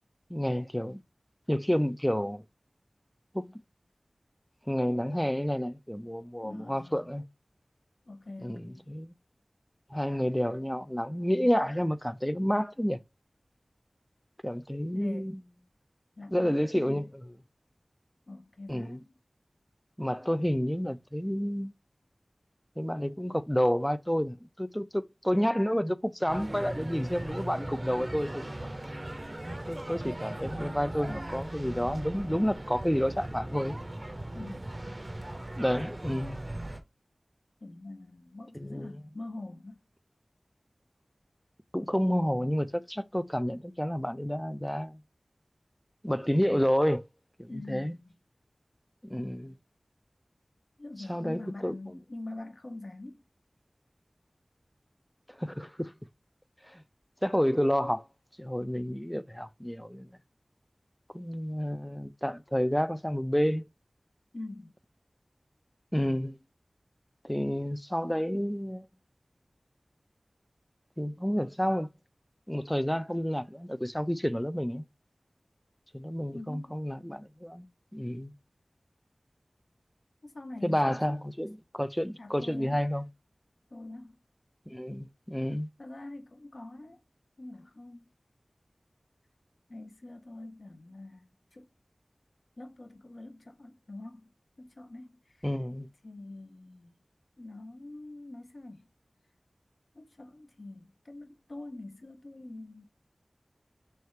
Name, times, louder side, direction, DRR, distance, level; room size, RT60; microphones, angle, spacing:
voice 1, 0.3-1.0 1.5-2.4 3.3-3.5 4.7-7.2 8.4-9.1 9.9-13.0 14.4-15.4 16.3-17.3 18.7-19.0 20.0-21.7 22.8-28.7 29.7-33.8 35.6-36.4 38.5-39.0 41.7-45.0 46.0-47.0 47.4-48.0 49.0-49.5 51.1-52.0 55.3-55.9 56.7-56.8 57.2-58.1 58.4-60.2 61.1-63.7 65.9-66.4 67.2-68.9 71.0-71.9 72.5-74.8 75.9-77.7 77.9-78.3 80.6-83.1 84.7-85.7 95.4-95.9, equal, 5° left, 0.3 m, -30 dB
voice 2, 6.4-7.1 8.1-8.9 14.9-15.3 16.2-17.0 18.3-19.1 34.3-34.6 37.6-39.8 47.5-48.1 50.8-53.2 64.3-64.7 76.3-76.7 80.2-81.2 82.2-82.8 83.7-84.1 85.8-87.0 87.4-88.1 89.7-91.7 92.6-94.3 94.6-95.2 96.0-97.0 97.4-98.8 99.9-102.8, left 2 dB, 60° left, 0.6 m, -44 dB
sound 1, 26.3-36.8, right 1 dB, 35° right, 0.6 m, -38 dB
3.3 x 2.4 x 4.2 m
wide cardioid pair, 65°, 0 cm